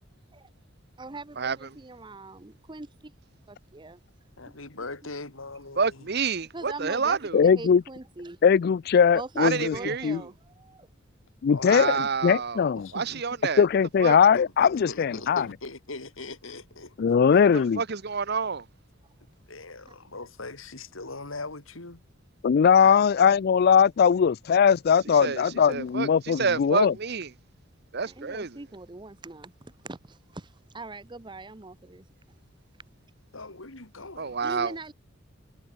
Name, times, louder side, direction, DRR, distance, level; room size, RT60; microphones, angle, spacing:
voice 1, 1.0-3.1 3.5-4.0 6.5-8.4 9.1-10.9 15.1-15.2 28.1-32.0 34.4-34.9, right 2 dB, 25° right, 0.8 m, -41 dB
voice 2, 4.4-6.0 11.5-12.0 12.7-13.2 14.3-16.9 17.5-17.7 19.5-22.0 22.8-23.0 26.4-26.5 33.3-34.7, left 3 dB, 80° left, 3.3 m, -40 dB
voice 3, 5.8-7.4 9.4-10.3 11.6-12.6 12.9-13.6 14.0-14.2 17.8-18.6 25.2-27.3 27.9-28.6 34.2-34.7, right 5 dB, 55° right, 1.0 m, -28 dB
voice 4, 7.3-7.8 8.4-9.8 10.0-10.2 11.4-12.9 13.6-15.5 17.0-17.8 22.4-26.9, left 7 dB, 50° left, 0.3 m, -20 dB
head